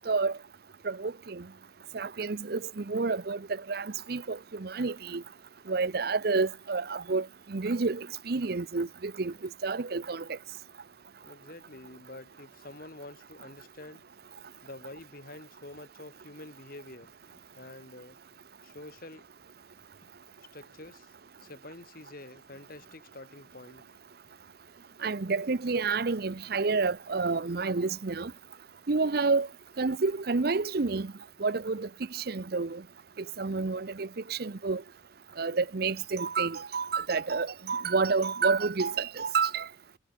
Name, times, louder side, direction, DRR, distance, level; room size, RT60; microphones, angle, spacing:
voice 1, 0.1-0.4 0.8-1.4 1.9-5.2 5.7-9.3 9.6-10.4 25.0-28.3 28.9-29.5 29.8-31.1 31.4-32.8 33.4-34.8 35.4-39.7, right 4 dB, 55° right, 0.7 m, -29 dB
voice 2, 11.2-14.0 14.6-18.2 18.6-19.3 20.0-20.1 20.5-21.1 21.4-23.9, left 2 dB, 50° left, 2.2 m, -47 dB
head